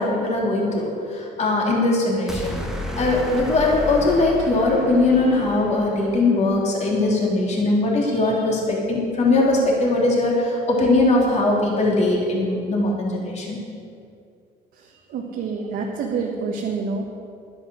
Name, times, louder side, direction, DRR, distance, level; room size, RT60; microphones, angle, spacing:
voice 1, 0.0-2.6 3.0-13.6, left 2 dB, 40° left, -3 dB, 3.1 m, -20 dB
sound 1, 2.3-6.5, left 1 dB, 5° right, 1.4 m, -32 dB
voice 2, 14.7-17.1, right 5 dB, 70° right, -1 dB, 1.5 m, -28 dB
11.5 x 9.8 x 6.3 m, 2.4 s
cardioid pair, 110°, 17 cm